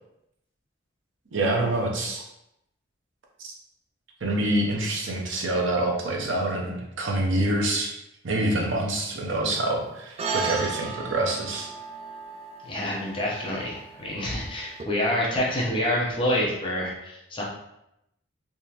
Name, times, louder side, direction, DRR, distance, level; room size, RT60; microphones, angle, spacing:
voice 1, 1.3-2.2 3.4-3.5 4.2-7.9 8.2-11.7, right 1 dB, 70° right, 0 dB, 0.7 m, -26 dB
sound 1, 10.2-14.8, right 4 dB, 30° right, 0.3 m, -35 dB
voice 2, 12.6-17.4, left 1 dB, 25° left, -4 dB, 0.8 m, -27 dB
3.6 x 3.0 x 2.9 m, 0.84 s
head